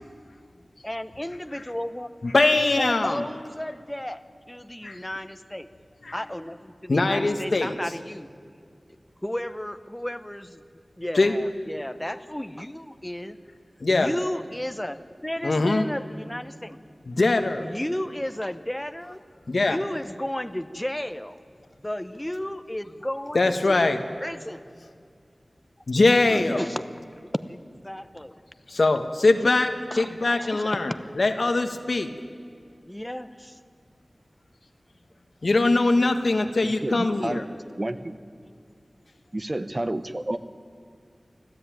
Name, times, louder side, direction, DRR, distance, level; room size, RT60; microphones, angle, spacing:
voice 1, 0.8-2.1 2.8-4.2 4.5-5.7 6.1-8.3 9.2-10.6 11.0-13.4 13.9-16.8 17.6-19.2 19.6-21.4 21.8-24.0 24.2-24.6 26.3-26.8 27.5-27.6 27.8-28.4 29.9-31.0 32.8-33.6, left 1 dB, 15° left, 11 dB, 1.0 m, -33 dB
voice 2, 2.2-3.2 4.8-5.0 6.1-6.2 6.9-7.7 11.1-11.3 13.8-14.1 15.4-15.9 17.1-17.7 19.5-19.8 23.3-24.0 25.9-26.7 28.7-32.1 35.4-37.4, left 2 dB, 75° left, 7 dB, 1.4 m, -22 dB
voice 3, 36.6-37.4 37.8-38.1 39.3-40.4, right 1 dB, 35° right, 10 dB, 1.0 m, -30 dB
24.5 x 15.0 x 9.2 m, 2.2 s
wide cardioid pair, 55°, 0 cm